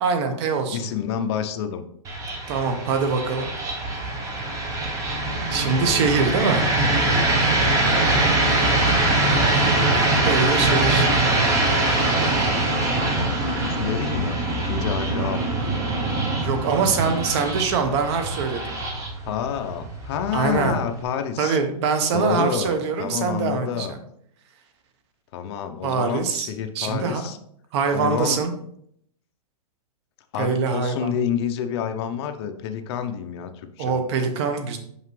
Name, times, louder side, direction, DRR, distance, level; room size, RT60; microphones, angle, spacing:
voice 1, 0.0-0.9 2.5-3.5 5.5-6.7 10.2-11.1 16.3-18.8 20.3-20.8 21.4-24.0 25.8-27.3 27.7-28.5 30.4-31.1 33.8-34.8, right 5 dB, 45° right, 7 dB, 1.0 m, -24 dB
voice 2, 0.7-1.8 8.2-8.6 13.4-15.4 19.3-21.6 22.1-23.9 25.3-27.4 27.9-28.4 30.3-34.0, left 8 dB, 45° left, 8 dB, 0.6 m, -28 dB
sound 1, 2.0-21.0, right 2 dB, 15° right, 0.8 m, -23 dB
5.7 x 5.5 x 3.2 m, 0.69 s
hypercardioid pair, 155°, 20 cm